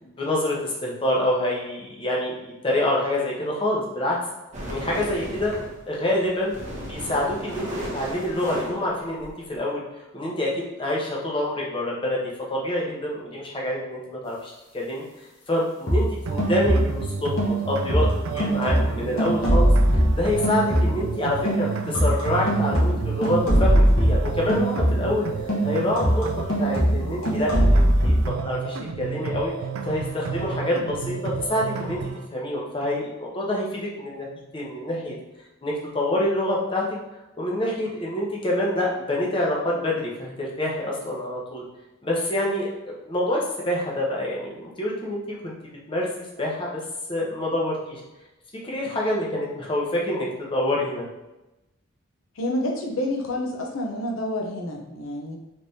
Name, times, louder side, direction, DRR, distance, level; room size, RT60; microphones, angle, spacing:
voice 1, 0.0-4.2 4.7-5.5 5.9-9.8 10.1-12.2 12.5-15.0 15.5-19.7 20.1-25.3 25.6-26.3 26.6-29.5 29.8-32.0 32.3-35.1 35.6-36.9 37.4-41.6 42.0-45.5 45.9-46.1 46.4-46.8 47.1-48.0 48.6-51.1, left 1 dB, 25° left, -3 dB, 0.7 m, -26 dB
sound 1, 4.5-5.8 6.2-9.6, equal, 35° right, 0.8 m, -35 dB
sound 2, 15.9-17.1 17.4-21.2 21.4-25.2 25.5-28.3, right 1 dB, 70° left, 1.0 m, -21 dB
sound 3, 16.3-32.3, right 5 dB, 85° right, 0.3 m, -32 dB
voice 2, 52.4-55.4, left 1 dB, 85° left, 0 dB, 0.7 m, -28 dB
3.4 x 3.2 x 2.7 m, 0.99 s
head